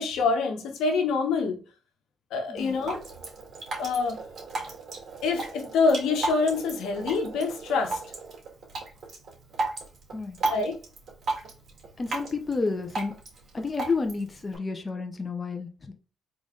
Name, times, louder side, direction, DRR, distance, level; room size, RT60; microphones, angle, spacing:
voice 1, 0.0-1.6 2.3-3.0 3.8-4.2 5.2-8.0 10.4-10.8, left 4 dB, 80° left, 1.1 m, -26 dB
Drip, 2.6-14.6, right 3 dB, 50° right, 2.1 m, -35 dB
voice 2, 12.0-13.1 13.5-15.9, left 4 dB, 30° left, 0.7 m, -30 dB
3.9 x 3.1 x 3.7 m
cardioid pair, 90°, 0 cm